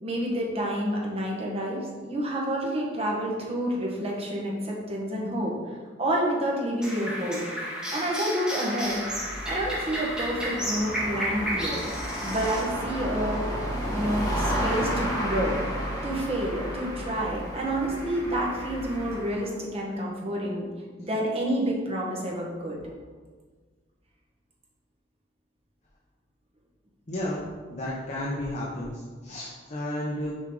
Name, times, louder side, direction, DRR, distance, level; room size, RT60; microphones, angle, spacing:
voice 1, 0.0-5.5 6.0-7.5 7.9-9.1 9.4-11.8 12.2-13.4 13.9-15.6 16.0-20.7 21.1-22.8, right 1 dB, 35° right, -2 dB, 1.4 m, -29 dB
sound 1, 6.8-12.6, equal, 5° right, 1.5 m, -32 dB
sound 2, 8.9-19.5, equal, 20° left, 1.6 m, -32 dB
voice 2, 27.1-30.3, left 1 dB, 40° left, -4 dB, 0.9 m, -32 dB
6.4 x 5.2 x 3.8 m, 1.5 s
head